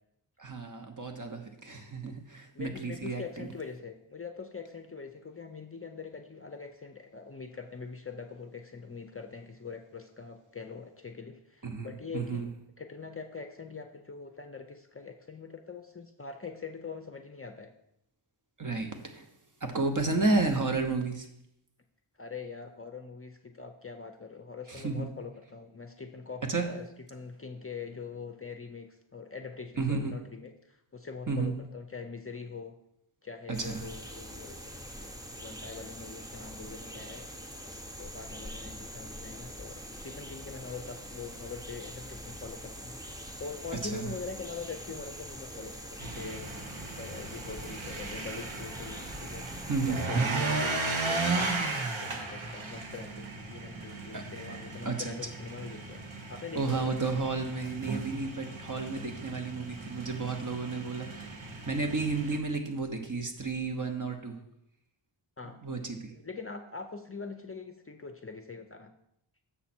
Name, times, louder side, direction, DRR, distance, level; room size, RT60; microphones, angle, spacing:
voice 1, 0.4-3.5 11.6-12.5 18.6-19.3 19.6-21.3 24.7-25.1 26.5-26.7 29.8-30.1 31.3-31.5 33.5-33.8 43.8-44.1 49.7-50.4 54.1-54.2 54.8-55.1 56.5-64.4 65.6-66.1, right 3 dB, 40° right, 4 dB, 1.1 m, -32 dB
voice 2, 2.5-12.5 12.8-17.7 22.2-26.8 27.1-32.7 33.2-34.6 35.0-35.1 35.4-37.3 37.6-46.4 47.0-49.5 49.8-56.9 65.4-65.6 65.8-68.9, left 5 dB, 30° left, 5 dB, 0.6 m, -43 dB
sound 1, 33.5-50.1, equal, 5° right, 0.8 m, -44 dB
sound 2, 46.0-62.4, right 3 dB, 65° right, 1.2 m, -36 dB
7.3 x 5.8 x 4.3 m, 0.79 s
wide cardioid pair, 70°, 50 cm